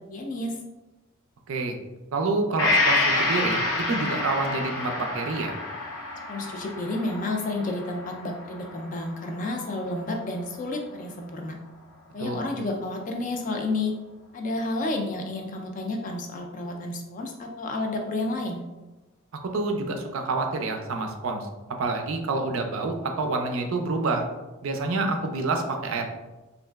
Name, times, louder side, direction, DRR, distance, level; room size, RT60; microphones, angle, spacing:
voice 1, 0.1-0.6 6.3-11.6 12.1-13.9 14.3-18.6, left 2 dB, 35° left, 3 dB, 0.3 m, -31 dB
voice 2, 2.1-3.6 3.9-5.5 12.2-12.4 19.5-21.5 21.8-24.2 24.6-26.1, right 3 dB, 70° right, 4 dB, 0.4 m, -27 dB
Gong, 2.6-10.2 10.6-10.7, left 2 dB, 85° left, 0.7 m, -28 dB
2.9 x 2.5 x 2.3 m, 1.1 s
head